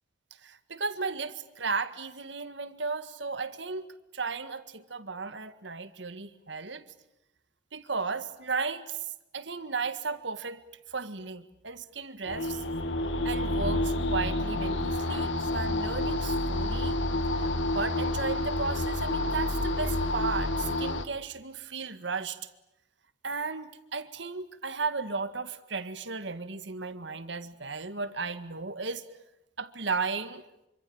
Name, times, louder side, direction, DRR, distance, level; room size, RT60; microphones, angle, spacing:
voice 1, 0.4-3.8 4.1-6.8 7.7-10.6 10.9-12.6 13.2-17.0 17.4-22.5 23.2-29.1 29.6-30.4, right 4 dB, 70° right, 11 dB, 1.9 m, -35 dB
sound 1, 12.3-21.1, left 1 dB, 75° left, 1.8 m, -29 dB
26.5 x 25.5 x 8.8 m, 0.88 s
head